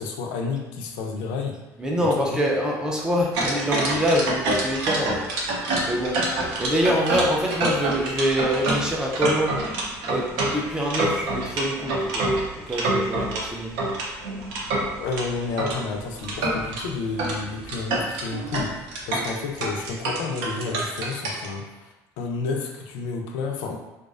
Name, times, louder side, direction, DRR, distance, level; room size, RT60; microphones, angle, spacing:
voice 1, 0.0-1.6 2.0-2.4 14.9-23.8, left 4 dB, 85° left, 2 dB, 0.4 m, -31 dB
voice 2, 1.8-5.2 5.9-6.2 6.6-9.5 10.1-12.3 12.5-13.7, equal, 10° right, -2 dB, 0.3 m, -25 dB
sound 1, 3.3-13.4 13.8-15.8 16.2-16.8 17.2-17.4 17.6-21.5, right 2 dB, 80° right, 0.5 m, -26 dB
2.4 x 2.1 x 2.3 m, 1.0 s
cardioid pair, 155°, 8 cm